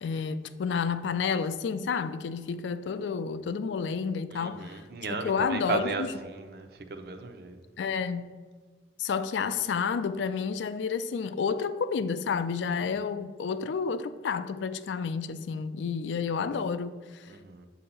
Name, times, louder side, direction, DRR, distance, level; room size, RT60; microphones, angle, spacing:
voice 1, 0.0-4.8 5.1-6.1 7.8-8.3 9.0-17.3, left 6 dB, 80° left, 0.3 m, -30 dB
voice 2, 4.3-7.6 17.3-17.7, right 4 dB, 55° right, 0.5 m, -35 dB
7.6 x 2.8 x 5.4 m
head